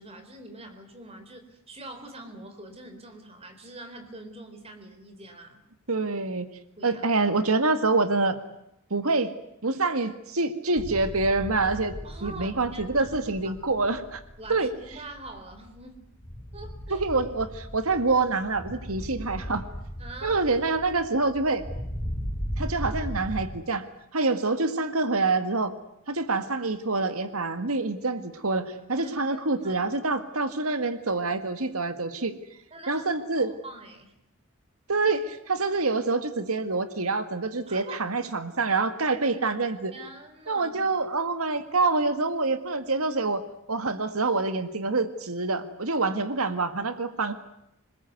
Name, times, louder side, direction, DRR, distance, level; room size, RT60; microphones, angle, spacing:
voice 1, 0.0-5.6 6.8-7.0 12.0-13.3 14.4-16.0 16.5-17.1 20.0-20.5 28.9-29.9 32.7-33.1 33.4-34.1 37.7-38.0 39.9-40.8, right 2 dB, 25° right, 6 dB, 4.2 m, -44 dB
voice 2, 5.9-6.5 6.8-8.4 8.9-9.3 9.6-12.0 12.2-14.2 14.5-14.7 16.9-19.6 20.2-21.6 22.6-23.9 24.1-25.7 26.1-32.3 32.9-33.5 34.9-39.9 40.5-43.4 43.7-47.3, right 3 dB, 80° right, 10 dB, 1.9 m, -26 dB
sound 1, 10.8-23.5, equal, 40° left, 6.6 m, -37 dB
27.0 x 21.0 x 9.5 m, 0.80 s
head